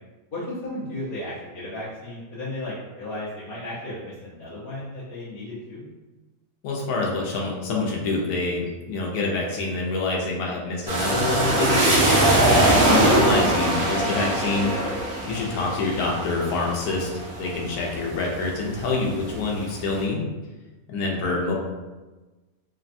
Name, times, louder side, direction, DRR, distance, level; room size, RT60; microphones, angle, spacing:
voice 1, 0.3-5.8 21.1-21.3, left 1 dB, 50° left, -10 dB, 0.7 m, -34 dB
voice 2, 6.6-12.1 12.8-14.7 15.3-17.1 17.4-20.2 20.9-21.5, left 3 dB, 80° left, -2 dB, 1.1 m, -26 dB
sound 1, 10.9-18.5 19.0-19.8, right 1 dB, 55° right, 0.6 m, -22 dB
3.3 x 2.1 x 2.5 m, 1.2 s
omnidirectional pair, 1.6 m